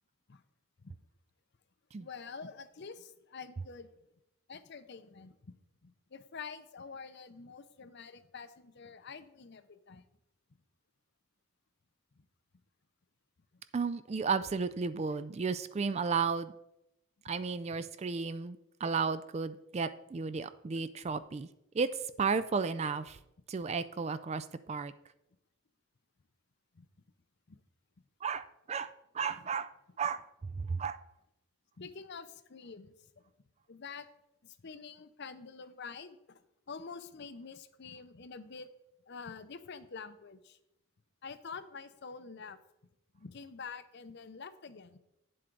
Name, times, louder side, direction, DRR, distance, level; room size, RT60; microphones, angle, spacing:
voice 1, 2.0-3.9 4.5-5.5 5.8-10.0 17.7-17.8 26.7-26.9 27.5-27.6 29.4-29.5 30.7-30.8 31.8-33.2 33.7-34.1 34.4-36.4 36.7-38.7 39.1-40.6 41.2-42.6 43.1-45.0, left 5 dB, 50° left, 12 dB, 0.6 m, -47 dB
voice 2, 13.7-16.5 17.2-21.5 21.7-21.9 22.2-23.2 23.5-24.9 28.2-29.7 30.0-30.2 30.6-31.0, right 5 dB, 30° right, 13 dB, 0.3 m, -33 dB
9.8 x 7.7 x 3.9 m, 0.86 s
head